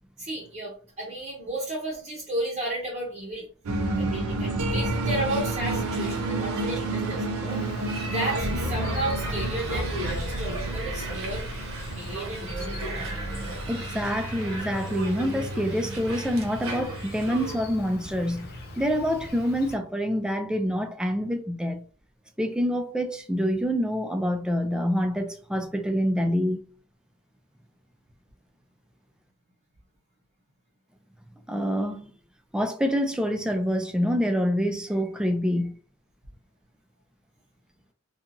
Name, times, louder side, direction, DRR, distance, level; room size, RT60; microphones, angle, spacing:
voice 1, 0.2-3.5 3.9-11.5 12.0-13.6, right 1 dB, 30° right, 0.7 m, -33 dB
sound 1, 3.6-18.8, right 2 dB, 85° right, 0.5 m, -31 dB
sound 2, 4.9-17.6, right 2 dB, 65° right, 0.9 m, -38 dB
Insect, 7.5-19.8, left 2 dB, 45° left, 0.6 m, -43 dB
voice 2, 13.7-18.5 18.8-21.8 22.4-26.6 31.5-32.1 32.5-35.8, equal, 5° right, 0.3 m, -26 dB
2.8 x 2.3 x 2.6 m
head